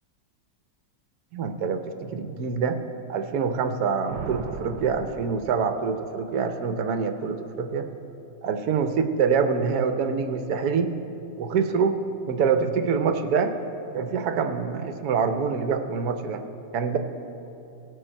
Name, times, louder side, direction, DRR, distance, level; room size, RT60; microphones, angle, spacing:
voice 1, 1.3-2.8 3.1-7.9 8.4-10.9 11.4-11.9 12.3-13.5 13.9-16.4 16.7-17.0, right 6 dB, 65° right, 7 dB, 1.1 m, -25 dB
sound 1, 4.1-6.3, right 6 dB, 90° right, 1.4 m, -38 dB
18.5 x 6.6 x 4.4 m, 2.9 s
omnidirectional pair, 2.1 m